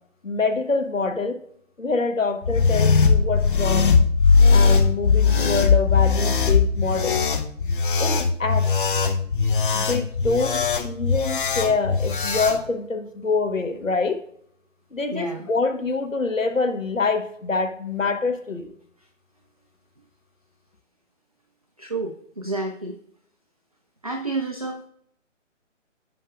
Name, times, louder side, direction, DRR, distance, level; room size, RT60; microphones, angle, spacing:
voice 1, 0.2-1.4 1.8-3.9 4.5-7.2 8.0-8.7 9.7-14.2 14.9-18.7, left 4 dB, 85° left, 6 dB, 1.2 m, -25 dB
sound 1, 2.4-12.6, left 5 dB, 40° left, 0.8 m, -19 dB
voice 2, 15.1-15.5 21.8-23.0 24.0-24.9, right 2 dB, 30° right, 4 dB, 0.4 m, -30 dB
15.5 x 5.5 x 2.4 m, 0.68 s
figure-of-eight pair, 135°, 39 cm